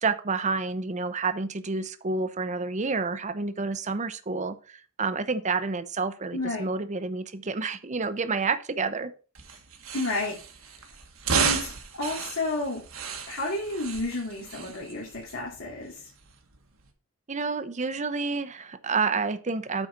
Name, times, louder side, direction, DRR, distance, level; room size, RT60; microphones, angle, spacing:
voice 1, 0.0-9.1 17.3-19.9, right 4 dB, 35° right, 11 dB, 0.7 m, -29 dB
voice 2, 6.3-6.7 9.9-10.3 11.3-11.7 12.0-12.8 13.3-16.1, left 2 dB, 90° left, -5 dB, 2.8 m, -31 dB
sound 1, 9.3-16.9, right 5 dB, 75° right, 1.6 m, -33 dB
9.0 x 4.2 x 5.8 m, 0.36 s
head